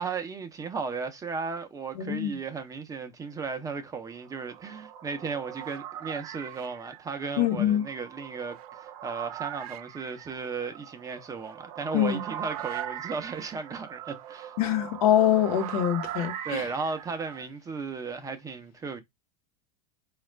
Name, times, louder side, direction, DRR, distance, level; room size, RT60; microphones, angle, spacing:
voice 1, 0.0-14.6 16.4-19.0, right 5 dB, 15° right, 0.6 m, -35 dB
voice 2, 2.0-2.3 7.4-7.8 11.9-12.2 14.6-16.6, left 11 dB, 70° left, 0.9 m, -24 dB
sound 1, 4.0-17.5, right 11 dB, 70° right, 0.7 m, -40 dB
4.1 x 2.4 x 3.1 m
supercardioid pair, 120°, 19 cm